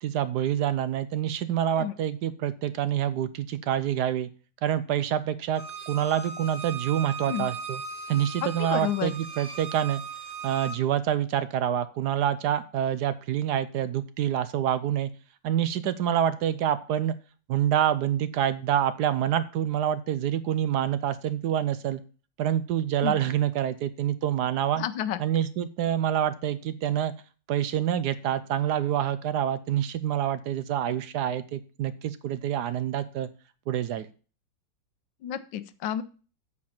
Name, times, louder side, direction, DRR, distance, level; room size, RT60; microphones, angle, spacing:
voice 1, 0.0-4.3 4.6-7.8 8.1-10.0 10.4-15.1 15.4-17.2 17.5-22.0 22.4-24.8 25.2-27.1 27.5-33.3 33.7-34.1, right 10 dB, 70° right, 14 dB, 1.1 m, -27 dB
Bowed string instrument, 5.5-10.8, right 5 dB, 40° right, 0.5 m, -38 dB
voice 2, 8.4-9.1 23.0-23.1 24.8-25.2 35.2-36.0, left 10 dB, 80° left, 13 dB, 1.4 m, -30 dB
8.4 x 4.4 x 7.1 m, 0.37 s
omnidirectional pair, 2.0 m